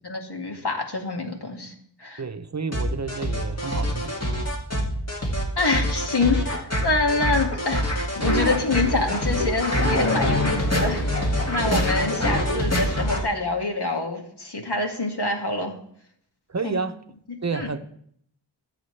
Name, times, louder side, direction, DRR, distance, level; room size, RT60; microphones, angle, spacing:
voice 1, 0.0-1.7 2.0-2.2 5.6-7.9 8.2-15.7 16.6-16.8 17.5-17.7, left 3 dB, 65° left, 2.2 m, -26 dB
voice 2, 2.2-4.2 7.2-7.3 16.5-17.0 17.4-17.8, right 4 dB, 40° right, 0.8 m, -30 dB
sound 1, 2.7-13.2, equal, 35° left, 2.2 m, -25 dB
23.5 x 7.9 x 3.3 m
wide cardioid pair, 65°, 43 cm